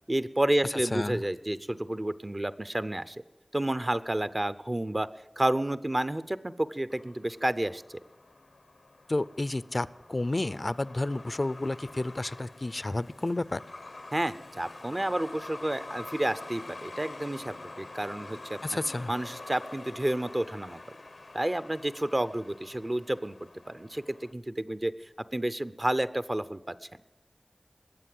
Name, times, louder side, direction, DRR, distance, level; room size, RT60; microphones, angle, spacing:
voice 1, 0.1-3.2 3.5-5.1 5.4-7.8 14.1-18.8 19.1-20.8 21.3-23.4 23.7-24.9 25.3-26.8, right 1 dB, 35° right, 14 dB, 0.6 m, -30 dB
voice 2, 0.9-1.2 9.1-13.6 18.6-19.1, left 2 dB, 55° left, 17 dB, 0.4 m, -31 dB
Truck, 6.9-24.3, left 2 dB, 85° left, 0.7 m, -47 dB
21.0 x 7.8 x 7.7 m, 1.1 s
wide cardioid pair, 45°, 0 cm